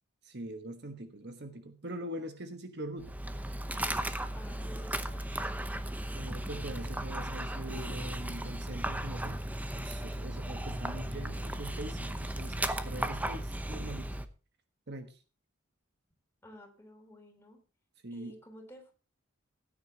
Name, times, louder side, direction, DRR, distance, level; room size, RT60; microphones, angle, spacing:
voice 1, 0.2-3.1 6.1-9.5 9.7-14.2 14.9-15.2 18.0-18.3, right 1 dB, 55° right, 8 dB, 1.3 m, -43 dB
Dog, 3.0-14.3, right 1 dB, 10° right, 0.8 m, -36 dB
voice 2, 4.3-5.8 10.8-11.4 16.4-17.6 18.1-18.9, equal, 10° left, 2 dB, 3.3 m, -52 dB
17.5 x 9.9 x 2.9 m, 0.33 s
head